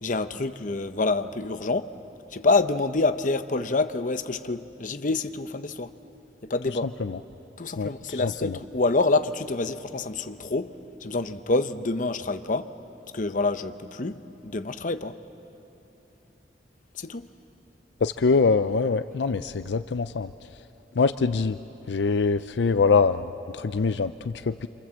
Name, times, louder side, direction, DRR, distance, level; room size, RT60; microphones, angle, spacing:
voice 1, 0.0-1.9 2.3-5.9 6.4-6.9 7.6-12.7 13.1-15.2 16.9-17.3, left 3 dB, 45° left, 0.8 m, -27 dB
voice 2, 8.2-8.6 18.0-20.3 21.0-21.6 21.9-24.7, left 4 dB, 80° left, 0.5 m, -24 dB
28.0 x 27.0 x 7.5 m
head